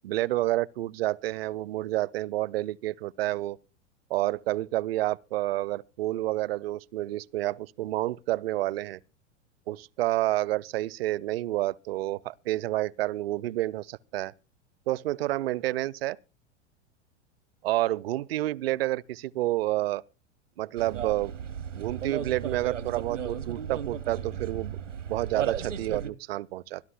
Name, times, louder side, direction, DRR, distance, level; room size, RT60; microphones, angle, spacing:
voice 1, 0.0-3.6 4.1-9.0 9.7-14.3 14.9-16.2 17.6-20.0 20.6-21.3 21.8-24.8 25.1-26.8, right 16 dB, 55° right, 0.5 m, -29 dB
sound 1, 20.8-26.1, right 8 dB, 85° right, 0.9 m, -35 dB
25.0 x 11.0 x 2.3 m
figure-of-eight pair, 90°, 36 cm